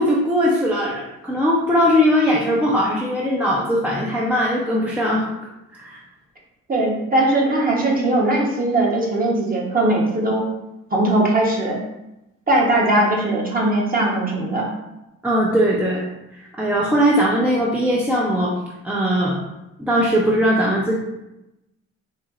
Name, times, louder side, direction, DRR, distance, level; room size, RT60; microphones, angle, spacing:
voice 1, 0.0-5.3 5.7-6.0 15.2-16.0 16.3-18.5 18.8-19.4 19.8-20.9, equal, 5° right, -4 dB, 0.5 m, -19 dB
voice 2, 6.7-10.4 10.9-11.8 12.5-14.7, right 1 dB, 30° right, -2 dB, 1.1 m, -19 dB
4.3 x 3.0 x 2.5 m, 0.93 s
cardioid pair, 90°, 30 cm